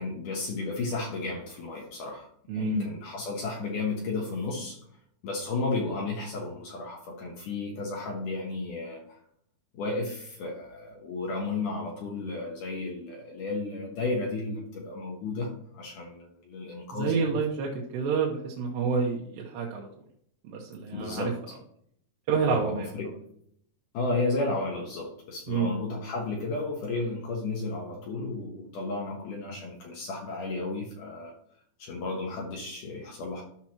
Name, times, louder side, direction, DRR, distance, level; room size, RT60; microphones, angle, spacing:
voice 1, 0.0-2.3 2.5-4.8 5.2-9.2 9.7-17.4 20.9-21.4 22.4-23.2 23.9-31.3 31.8-33.4, left 3 dB, 70° left, -1 dB, 2.0 m, -33 dB
voice 2, 2.5-2.9 16.9-19.9 20.4-21.3 22.3-22.9 25.5-25.7, right 5 dB, 80° right, -2 dB, 3.0 m, -28 dB
12.5 x 5.9 x 2.9 m, 0.69 s
omnidirectional pair, 5.1 m